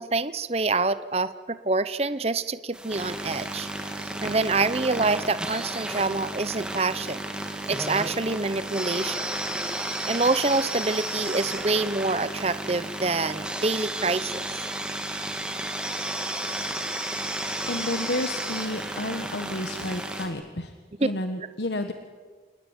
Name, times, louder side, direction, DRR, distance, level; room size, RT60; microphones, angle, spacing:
voice 1, 0.0-3.7 4.0-7.2 7.7-9.2 9.8-14.5, right 3 dB, 35° right, 14 dB, 0.8 m, -26 dB
sound 1, 2.7-20.3, right 1 dB, 5° right, 2.8 m, -32 dB
voice 2, 17.7-20.7 21.0-21.9, left 1 dB, 80° left, 8 dB, 1.4 m, -31 dB
27.5 x 19.5 x 9.9 m, 1.5 s
head